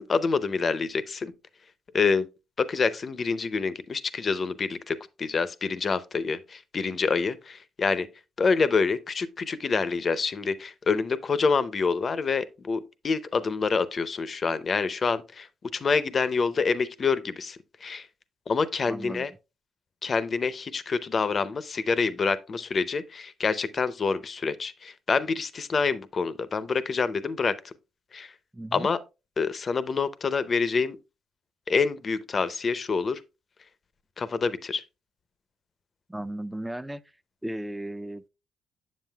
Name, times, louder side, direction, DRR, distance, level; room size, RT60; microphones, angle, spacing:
voice 1, 0.0-1.3 1.9-2.3 2.6-8.1 8.4-15.5 15.7-18.1 18.5-19.3 20.0-27.7 28.1-28.3 28.7-29.0 29.4-31.0 31.7-33.2 34.2-34.8, left 5 dB, 40° left, 0.6 m, -27 dB
voice 2, 18.8-19.3 28.5-28.9 36.1-37.0 37.4-38.3, right 1 dB, 5° right, 0.4 m, -35 dB
7.4 x 7.3 x 2.3 m
cardioid pair, 90°, 0 cm